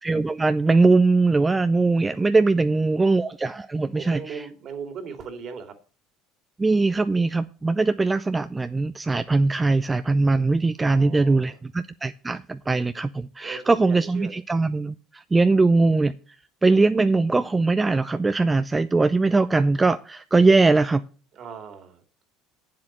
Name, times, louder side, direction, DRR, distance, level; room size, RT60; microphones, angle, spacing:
voice 1, 0.0-4.4 6.6-16.1 16.6-21.0, right 3 dB, 20° right, 11 dB, 0.5 m, -21 dB
voice 2, 2.6-3.1 3.9-5.8 10.9-11.6 13.4-14.4 21.3-22.2, right 6 dB, 50° right, 7 dB, 2.5 m, -39 dB
7.7 x 7.6 x 7.2 m, 0.39 s
hypercardioid pair, 75°, 0 cm